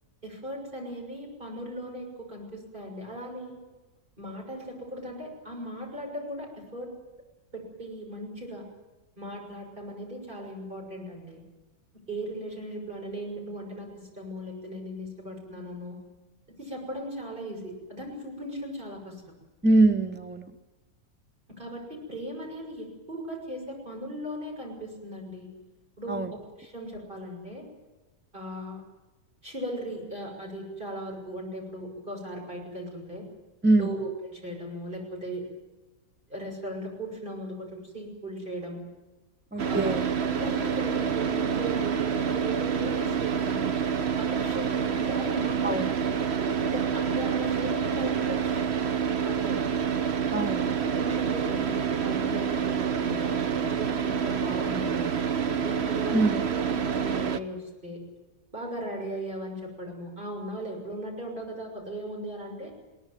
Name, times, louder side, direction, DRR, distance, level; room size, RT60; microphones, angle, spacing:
voice 1, 0.2-3.5 4.2-6.9 7.5-8.6 9.2-11.4 12.1-15.9 16.6-19.1 21.5-25.5 26.0-26.3 26.6-27.6 28.3-28.8 29.4-33.2 33.7-35.5 36.3-38.8 39.6-39.9 40.2-43.7 44.2-45.8 46.3-48.6 49.2-49.6 50.8-55.1 55.6-58.0 58.5-62.7, right 1 dB, 30° right, -1 dB, 6.6 m, -37 dB
voice 2, 19.6-20.5 26.1-26.3 33.6-34.0 39.5-40.0 45.6-45.9 50.3-50.9 56.1-56.3, right 2 dB, 10° right, 9 dB, 0.6 m, -23 dB
Car / Idling, 39.6-57.4, right 7 dB, 50° right, 1.1 m, -27 dB
21.5 x 18.5 x 9.2 m, 1.1 s
omnidirectional pair, 1.6 m